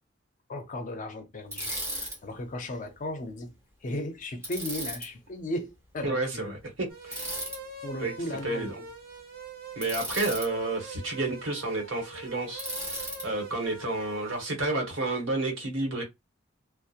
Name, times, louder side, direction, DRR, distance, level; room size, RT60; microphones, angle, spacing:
voice 1, 0.5-3.5 3.8-6.5 7.8-8.8, left 1 dB, 40° left, 0.5 m, -36 dB
Bicycle, 1.5-2.2 4.4-5.1 7.1-7.6 9.8-10.5 12.6-13.3, right 1 dB, 15° right, 0.9 m, -35 dB
voice 2, 6.0-7.3 8.0-8.1 8.4-8.7 9.8-16.0, right 2 dB, 75° right, 1.1 m, -31 dB
sound 1, 6.9-14.5, right 3 dB, 50° right, 0.7 m, -44 dB
2.8 x 2.0 x 2.4 m
head